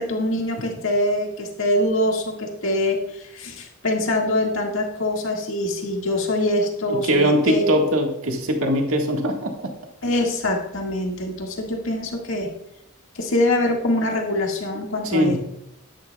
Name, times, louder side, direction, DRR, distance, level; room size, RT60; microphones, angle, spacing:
voice 1, 0.0-7.9 10.0-12.5 13.2-15.4, left 1 dB, 70° left, 0 dB, 1.8 m, -24 dB
voice 2, 6.9-9.5 15.1-15.4, equal, 75° right, 2 dB, 1.6 m, -21 dB
11.0 x 11.0 x 2.3 m, 0.80 s
head